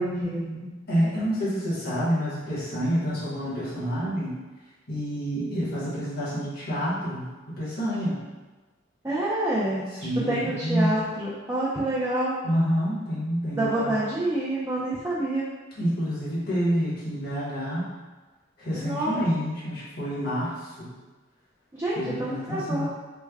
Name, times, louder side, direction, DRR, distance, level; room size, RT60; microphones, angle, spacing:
voice 1, 0.0-0.7 9.0-9.9 10.3-12.3 13.6-15.4 18.7-19.2 21.7-22.8, right 1 dB, 15° right, -9 dB, 0.5 m, -27 dB
voice 2, 0.9-4.4 4.9-8.2 9.9-10.9 12.4-13.9 15.8-17.9 18.6-20.9 21.9-22.9, equal, 50° left, -10 dB, 1.2 m, -28 dB
3.3 x 2.2 x 3.4 m, 1.3 s
head